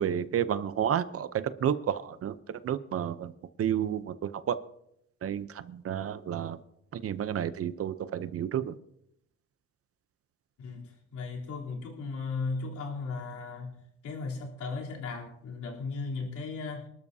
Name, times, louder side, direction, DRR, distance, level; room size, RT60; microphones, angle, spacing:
voice 1, 0.0-3.3 3.6-4.6 5.2-6.6 6.9-8.7, right 9 dB, 50° right, 13 dB, 0.8 m, -31 dB
voice 2, 10.6-13.8 14.0-16.9, left 4 dB, 80° left, -3 dB, 3.6 m, -36 dB
27.0 x 12.5 x 2.8 m, 0.76 s
cardioid pair, 145°, 29 cm